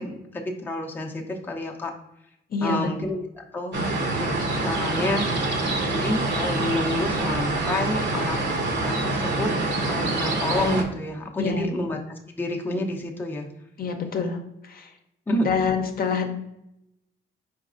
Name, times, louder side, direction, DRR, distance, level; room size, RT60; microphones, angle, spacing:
voice 1, 0.0-1.9 2.6-3.9 4.2-4.3 4.6-5.3 5.9-8.4 8.8-9.5 9.9-13.5 15.3-15.5, left 1 dB, 10° left, 0 dB, 0.6 m, -29 dB
voice 2, 2.5-2.9 11.4-11.7 13.8-14.4 14.6-14.9 15.4-16.4, left 5 dB, 50° left, 4 dB, 0.7 m, -26 dB
sound 1, 3.7-10.8, right 2 dB, 60° right, 0.9 m, -26 dB
4.6 x 4.0 x 2.5 m, 0.84 s
cardioid pair, 90°, 20 cm